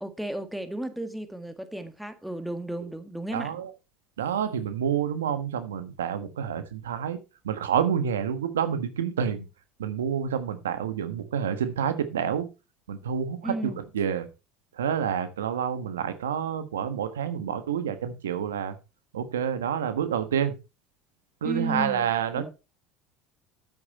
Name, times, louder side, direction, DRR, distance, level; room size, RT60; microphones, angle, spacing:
voice 1, 0.0-3.5 13.4-13.8 21.4-22.1 22.4-22.5, right 1 dB, ahead, 1.7 m, -34 dB
voice 2, 3.3-3.7 4.2-7.2 7.4-9.4 9.8-12.5 12.9-14.3 14.8-18.8 19.1-20.5 21.4-22.5, right 8 dB, 90° right, 1.3 m, -28 dB
9.5 x 8.1 x 4.2 m
hypercardioid pair, 80°, 0 cm